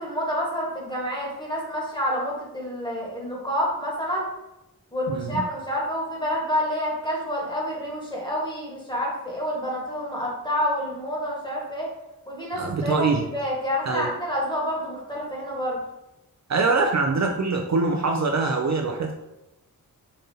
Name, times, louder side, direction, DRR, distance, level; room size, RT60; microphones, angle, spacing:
voice 1, 0.0-4.3 4.9-11.9 12.3-15.8, equal, 15° left, -3 dB, 1.3 m, -28 dB
voice 2, 5.1-5.4 12.5-13.2 13.9-14.1 16.5-19.1, right 4 dB, 50° right, 3 dB, 0.4 m, -23 dB
5.1 x 2.6 x 2.7 m, 0.94 s
wide cardioid pair, 75°, 36 cm